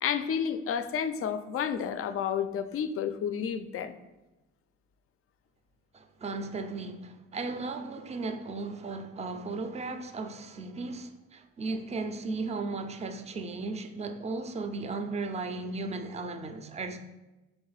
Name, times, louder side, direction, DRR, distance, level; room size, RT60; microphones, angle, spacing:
voice 1, 0.0-3.9, left 7 dB, 50° left, 0.4 m, -31 dB
voice 2, 5.9-17.0, right 3 dB, 20° right, 0.4 m, -36 dB
3.6 x 3.4 x 3.9 m
cardioid pair, 90°, 30 cm